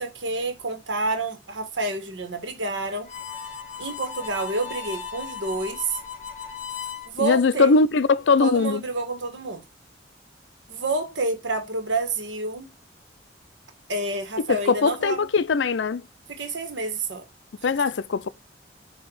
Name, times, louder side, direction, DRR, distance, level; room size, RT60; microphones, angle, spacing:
voice 1, 0.0-3.1 3.8-6.0 7.1-7.7 8.4-9.6 10.7-12.7 13.9-15.3 16.3-17.2, right 2 dB, 85° right, 1.5 m, -28 dB
Harmonica, 3.0-7.1, left 7 dB, 40° left, 1.4 m, -36 dB
voice 2, 7.2-8.8 14.7-16.0 17.6-18.3, left 4 dB, 80° left, 0.5 m, -20 dB
7.1 x 2.8 x 5.4 m
head